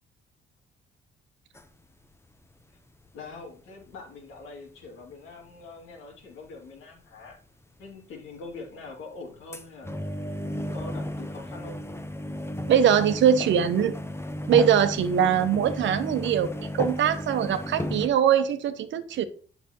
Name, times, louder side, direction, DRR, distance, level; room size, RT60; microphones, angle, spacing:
sound 1, 1.5-1.7 2.4-4.2 4.7-5.3 6.1-6.2 7.2-7.4 7.8-7.9 8.3-9.1 9.5-18.1, left 1 dB, 15° left, 0.8 m, -34 dB
voice 1, 3.1-7.4 7.8-9.9 10.4-11.9, left 3 dB, 85° left, 2.4 m, -43 dB
voice 2, 12.7-13.9 14.5-19.2, right 8 dB, 70° right, 0.9 m, -22 dB
8.5 x 5.8 x 2.9 m
cardioid pair, 90°, 20 cm